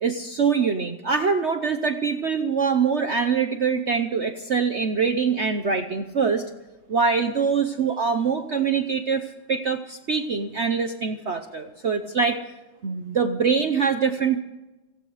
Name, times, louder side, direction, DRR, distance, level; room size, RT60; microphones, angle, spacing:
voice 1, 0.0-6.4 6.9-12.4 12.8-14.4, right 5 dB, 65° right, 7 dB, 0.6 m, -24 dB
17.0 x 16.5 x 4.9 m, 1.1 s
omnidirectional pair, 2.2 m